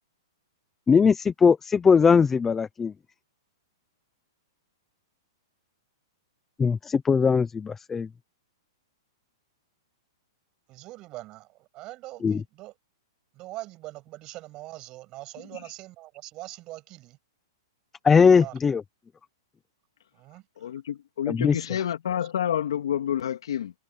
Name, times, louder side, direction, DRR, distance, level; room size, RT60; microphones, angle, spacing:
voice 1, 0.9-2.9 6.6-8.1 12.2-12.4 18.0-18.8 21.3-21.6, left 5 dB, 10° left, 0.6 m, -20 dB
voice 2, 10.7-12.7 13.3-17.2 18.3-18.6 20.1-20.5, right 18 dB, 25° right, 7.8 m, -42 dB
voice 3, 20.6-23.7, left 9 dB, 75° left, 3.2 m, -29 dB
hypercardioid pair, 165°, 3 cm